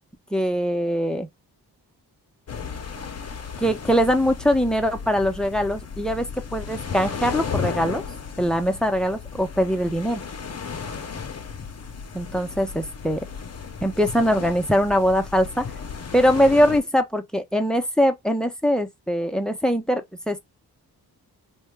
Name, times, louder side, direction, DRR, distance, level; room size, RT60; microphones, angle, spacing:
voice 1, 0.3-1.3 3.6-8.0 8.4-10.2 12.1-13.3 13.8-15.7 16.1-20.4, equal, ahead, 0.6 m, -22 dB
sound 1, 2.5-16.8, left 6 dB, 40° left, 0.7 m, -34 dB
2.7 x 2.2 x 3.2 m
cardioid pair, 60°, 39 cm